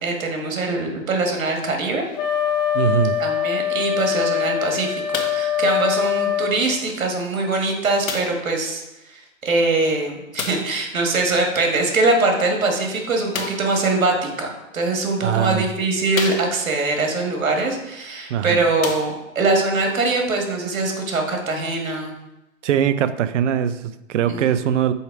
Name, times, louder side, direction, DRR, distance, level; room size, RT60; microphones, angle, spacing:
voice 1, 0.0-2.0 3.2-8.8 9.1-14.5 14.7-22.1 24.3-24.4, right 3 dB, 85° right, 2 dB, 1.8 m, -22 dB
Wind instrument woodwind instrument, 2.2-6.6, left 9 dB, 35° left, 0.9 m, -23 dB
voice 2, 2.7-3.2 15.2-15.7 18.3-18.6 22.6-24.9, right 9 dB, 65° right, 13 dB, 0.6 m, -21 dB
sound 1, 5.1-5.5 6.4-6.5 8.0-8.5 10.3-10.8 13.3-13.7 14.7-14.8 15.4-15.5 16.1-16.8 18.1-18.2 18.7-19.5 20.3-20.4, left 5 dB, 85° left, 1.2 m, -30 dB
5.5 x 4.6 x 4.7 m, 0.96 s
hypercardioid pair, 135°, 40 cm